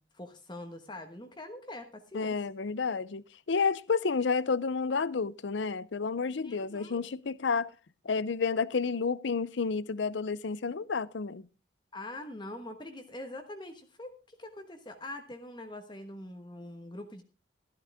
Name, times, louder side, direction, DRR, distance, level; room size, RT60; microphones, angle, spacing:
voice 1, 0.0-2.4 6.4-7.0 11.9-17.2, left 1 dB, 25° left, 1.2 m, -44 dB
voice 2, 2.1-7.7 8.0-11.5, left 5 dB, 70° left, 0.6 m, -30 dB
13.5 x 12.0 x 3.5 m
head